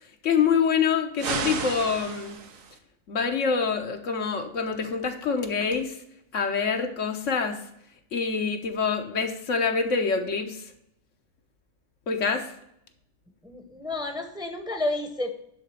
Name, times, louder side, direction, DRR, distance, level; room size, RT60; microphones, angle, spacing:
voice 1, 0.2-2.4 3.1-6.0 6.3-7.6 8.1-10.6 12.1-12.5, left 5 dB, 70° left, 5 dB, 1.3 m, -26 dB
sound 1, 1.2-2.8, right 5 dB, 80° right, 1.4 m, -32 dB
voice 2, 13.4-15.3, left 2 dB, 5° right, 5 dB, 0.8 m, -30 dB
11.0 x 3.9 x 6.5 m, 0.76 s
omnidirectional pair, 1.4 m